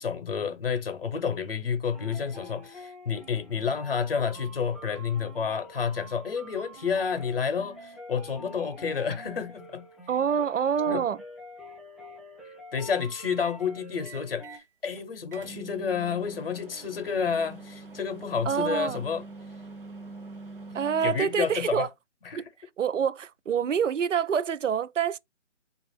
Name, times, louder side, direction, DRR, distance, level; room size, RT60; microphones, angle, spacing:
voice 1, 0.0-9.8 10.9-11.0 12.7-19.2 21.0-21.9 22.2-22.4, left 6 dB, 50° left, 0.7 m, -30 dB
sound 1, 1.9-14.6, equal, ahead, 0.4 m, -47 dB
voice 2, 10.1-11.2 18.5-19.0 20.7-21.9 22.4-22.5 22.8-25.2, right 7 dB, 80° right, 0.5 m, -26 dB
sound 2, 13.4-13.6 14.0-14.7 15.0-15.1 15.3-21.6, right 3 dB, 45° right, 0.8 m, -45 dB
3.0 x 2.4 x 3.2 m
figure-of-eight pair, 175°, 37 cm